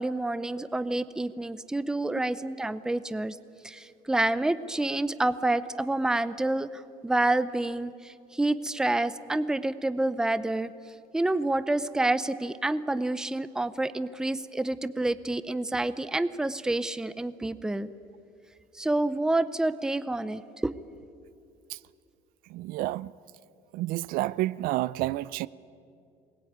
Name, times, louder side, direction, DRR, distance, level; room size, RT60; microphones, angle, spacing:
voice 1, 0.0-3.4 3.6-10.7 11.1-17.9 18.7-20.7, right 2 dB, 5° right, 0.5 m, -28 dB
voice 2, 22.5-23.1 23.7-25.5, right 16 dB, 70° right, 0.5 m, -29 dB
22.5 x 20.0 x 9.4 m
cardioid pair, 165°, 15 cm